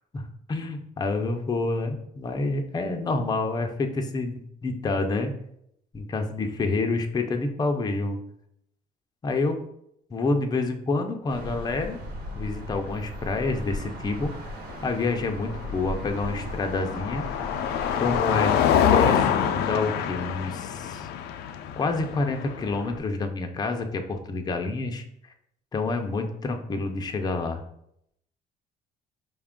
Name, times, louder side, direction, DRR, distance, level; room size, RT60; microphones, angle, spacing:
voice 1, 0.5-5.4 5.9-8.2 9.2-9.6 10.1-12.0 12.3-14.3 14.8-17.3 17.9-18.5 18.9-21.1 21.8-25.0 25.7-27.6, left 3 dB, 25° left, 5 dB, 0.5 m, -28 dB
sound 1, 11.3-18.2, left 1 dB, 65° right, 1.3 m, -37 dB
Car passing by, 14.7-23.0, left 9 dB, 80° left, 0.4 m, -26 dB
5.2 x 2.4 x 3.6 m, 0.74 s
cardioid pair, 110°, 17 cm